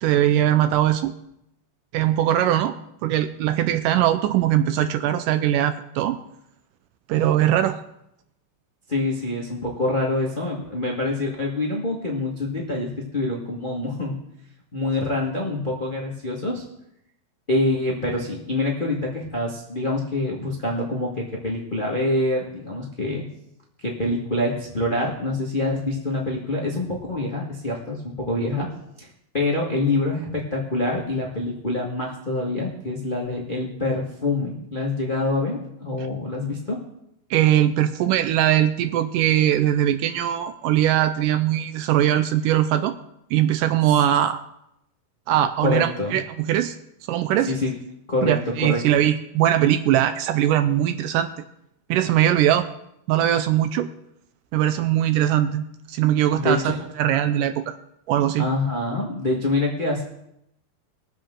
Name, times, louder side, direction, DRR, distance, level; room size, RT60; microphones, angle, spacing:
voice 1, 0.0-1.1 1.9-2.7 3.0-6.2 7.1-7.8 37.3-42.9 43.3-44.4 45.3-46.8 47.1-47.5 48.2-51.3 51.9-52.7 53.1-53.9 54.5-57.8 58.1-58.5, right 11 dB, 80° right, 10 dB, 2.0 m, -21 dB
voice 2, 8.9-14.2 14.7-16.6 17.5-23.2 23.8-28.7 29.0-29.1 29.3-36.8 45.6-46.2 47.5-47.7 48.1-49.0 56.3-56.6 58.4-60.0, left 2 dB, 65° left, -3 dB, 0.5 m, -26 dB
21.0 x 7.6 x 3.7 m, 0.81 s
omnidirectional pair, 4.1 m